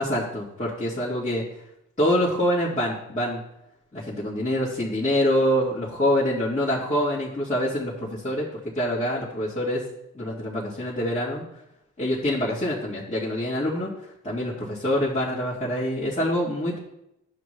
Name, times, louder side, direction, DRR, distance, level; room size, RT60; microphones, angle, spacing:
voice 1, 0.0-1.4 2.0-3.4 3.9-8.5 8.7-9.8 10.1-11.4 12.0-13.9 14.2-16.8, equal, 20° left, -9 dB, 2.3 m, -25 dB
9.5 x 6.0 x 3.3 m, 0.83 s
supercardioid pair, 55°, 33 cm